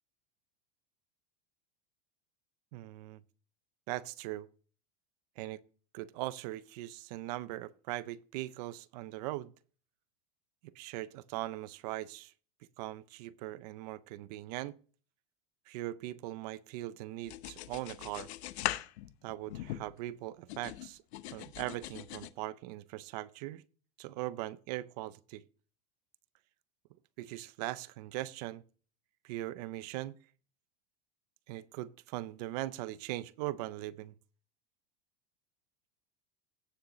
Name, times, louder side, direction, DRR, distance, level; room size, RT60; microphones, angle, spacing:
voice 1, 2.7-3.2 3.9-4.5 5.4-5.6 5.9-9.5 10.6-12.3 12.8-14.8 15.7-18.3 19.2-21.0 21.3-23.6 24.0-25.4 27.2-28.6 29.2-30.2 31.5-34.1, right 16 dB, 40° right, 0.5 m, -40 dB
sound 1, 17.3-20.1 20.5-22.3, left 15 dB, 80° left, 0.8 m, -40 dB
17.0 x 6.4 x 3.0 m
supercardioid pair, 170°, 32 cm